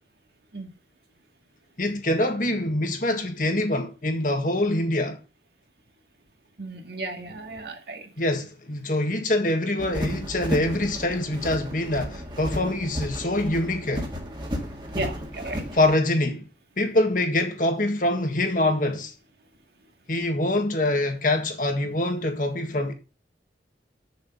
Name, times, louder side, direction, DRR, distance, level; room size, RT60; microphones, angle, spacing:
voice 1, 1.8-5.2 8.2-14.1 15.7-16.5 16.8-19.1 20.1-22.9, left 1 dB, 45° left, 1.7 m, -24 dB
voice 2, 6.6-8.0 14.9-15.6, right 2 dB, 65° right, 1.9 m, -34 dB
sound 1, 9.8-15.9, equal, 25° right, 1.9 m, -33 dB
7.7 x 6.8 x 5.3 m
head